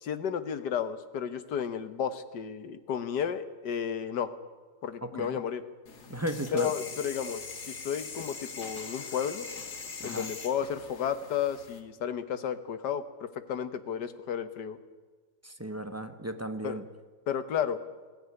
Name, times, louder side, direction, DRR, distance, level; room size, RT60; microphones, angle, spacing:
voice 1, 0.0-4.3 4.8-5.6 6.5-9.5 10.0-14.8 16.6-16.8 17.3-17.8, left 8 dB, 85° left, 11 dB, 1.8 m, -32 dB
voice 2, 5.0-5.4 6.1-6.7 10.0-10.3 15.4-16.8, right 1 dB, 10° right, 8 dB, 0.8 m, -35 dB
sound 1, 5.9-11.8, left 4 dB, 70° left, 2.5 m, -42 dB
20.0 x 16.0 x 9.7 m, 1.4 s
omnidirectional pair, 1.8 m